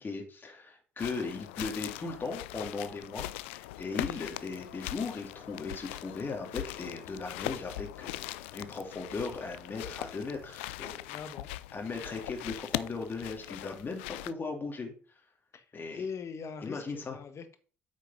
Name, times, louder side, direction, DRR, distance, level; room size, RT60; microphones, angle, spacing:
voice 1, 0.0-11.0 11.7-14.9 15.7-16.0 16.6-17.2, left 4 dB, 30° left, 1 dB, 2.4 m, -38 dB
sound 1, 1.0-14.3, left 17 dB, 70° left, 0.3 m, -41 dB
voice 2, 11.1-11.5 15.5-15.7 15.9-17.6, left 6 dB, 45° left, 8 dB, 1.5 m, -41 dB
8.4 x 5.2 x 5.4 m, 0.41 s
figure-of-eight pair, 50°, 7 cm